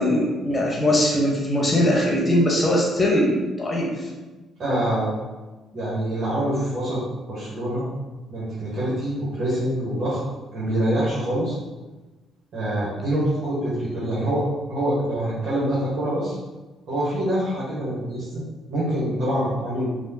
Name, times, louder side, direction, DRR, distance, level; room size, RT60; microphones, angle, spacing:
voice 1, 0.0-3.9, left 1 dB, 25° left, -2 dB, 1.3 m, -21 dB
voice 2, 4.6-5.1 5.7-7.0 7.3-7.8 8.3-10.2 10.5-11.6 12.5-14.4 14.7-16.3 16.9-18.4 18.7-19.9, right 1 dB, 50° right, -10 dB, 1.4 m, -25 dB
5.2 x 2.5 x 2.9 m, 1.2 s
figure-of-eight pair, 45°, 0 cm